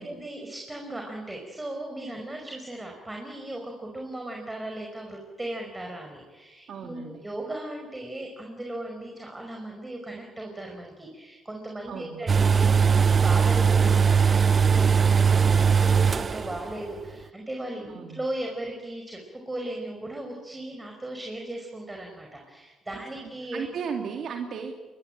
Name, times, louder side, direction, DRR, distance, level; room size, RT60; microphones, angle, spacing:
voice 1, 0.0-19.2 19.5-23.7, right 1 dB, 15° right, 2 dB, 5.2 m, -37 dB
voice 2, 6.7-7.2 11.9-12.2 17.9-18.2 22.9-24.8, right 6 dB, 65° right, 3 dB, 2.7 m, -36 dB
sound 1, 12.3-16.7 17.0-17.1, right 6 dB, 40° right, 0.8 m, -20 dB
24.5 x 22.0 x 8.9 m, 1.2 s
cardioid pair, 90°, 0 cm